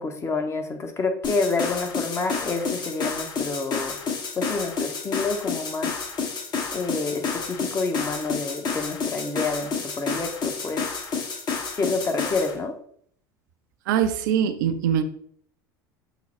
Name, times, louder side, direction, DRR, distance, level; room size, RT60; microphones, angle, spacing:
voice 1, 0.0-4.0 4.4-5.9 6.7-10.9 11.7-12.8, left 3 dB, 25° left, 5 dB, 0.8 m, -28 dB
sound 1, 1.2-12.5, left 5 dB, 45° left, 1.1 m, -30 dB
voice 2, 13.9-15.0, right 9 dB, 75° right, 10 dB, 0.4 m, -22 dB
5.8 x 2.0 x 4.2 m, 0.63 s
hypercardioid pair, 80°, 10 cm